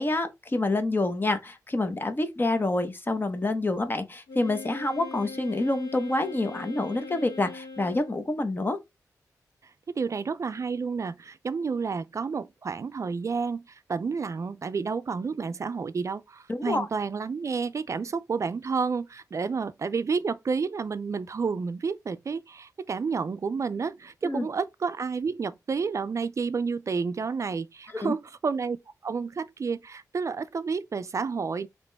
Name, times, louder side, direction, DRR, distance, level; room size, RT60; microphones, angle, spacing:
voice 1, 0.0-8.8 16.5-16.9 24.2-24.5 28.0-28.1, left 2 dB, 30° left, 1.0 m, -27 dB
Wind instrument woodwind instrument, 4.3-8.3, left 4 dB, 80° left, 1.5 m, -41 dB
voice 2, 10.0-28.8 29.0-31.7, right 5 dB, 50° right, 0.4 m, -30 dB
5.1 x 3.0 x 3.4 m
cardioid pair, 80°, 7 cm